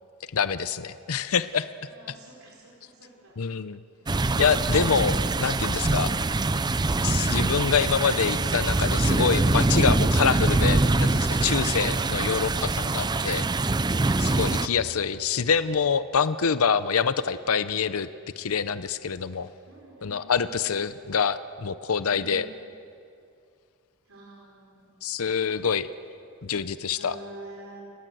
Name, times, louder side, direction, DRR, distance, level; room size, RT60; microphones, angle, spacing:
voice 1, 0.3-1.7 3.4-3.8 4.4-6.1 7.0-13.4 14.2-18.1 18.4-19.5 20.0-22.5 25.0-25.9 26.4-27.1, left 6 dB, 70° left, 13 dB, 0.7 m, -26 dB
voice 2, 1.8-3.4 19.6-21.0 22.0-22.6 24.0-25.1 26.9-27.8, right 1 dB, 65° right, -3 dB, 4.3 m, -49 dB
sound 1, 4.1-14.7, right 2 dB, 20° right, 0.5 m, -24 dB
sound 2, 9.8-15.2, left 1 dB, 50° left, 5.7 m, -47 dB
29.5 x 17.0 x 7.9 m, 2.4 s
head